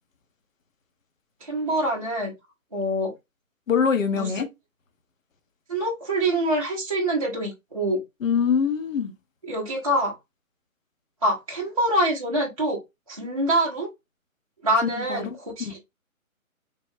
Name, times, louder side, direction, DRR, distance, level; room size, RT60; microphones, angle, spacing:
voice 1, 1.4-2.3 2.7-3.1 4.1-4.3 5.7-8.0 9.5-10.1 11.2-12.8 13.1-13.9 14.6-15.8, right 1 dB, 25° right, 0.5 m, -25 dB
voice 2, 3.7-4.5 8.2-9.1 14.8-15.3 15.6-15.7, left 6 dB, 65° left, 0.7 m, -24 dB
3.4 x 2.0 x 2.5 m
figure-of-eight pair, 140°, 42 cm